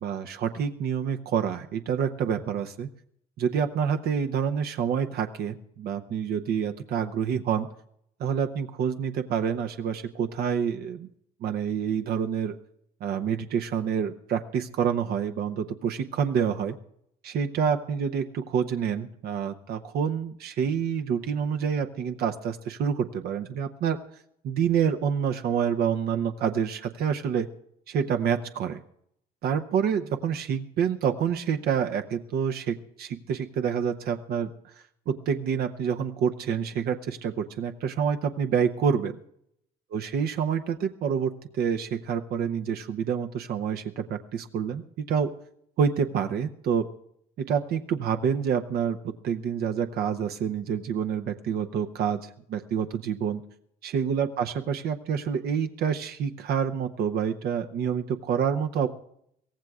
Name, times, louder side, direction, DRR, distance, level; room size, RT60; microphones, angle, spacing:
voice 1, 0.0-2.9 3.4-7.7 8.2-11.1 11.4-12.6 13.0-16.7 17.2-24.0 24.4-27.5 27.9-28.8 29.4-34.5 35.1-39.2 39.9-45.3 45.8-46.9 47.4-53.4 53.8-58.9, right 7 dB, 65° right, 6 dB, 0.8 m, -27 dB
23.0 x 16.5 x 2.4 m, 0.72 s
cardioid pair, 110°, 17 cm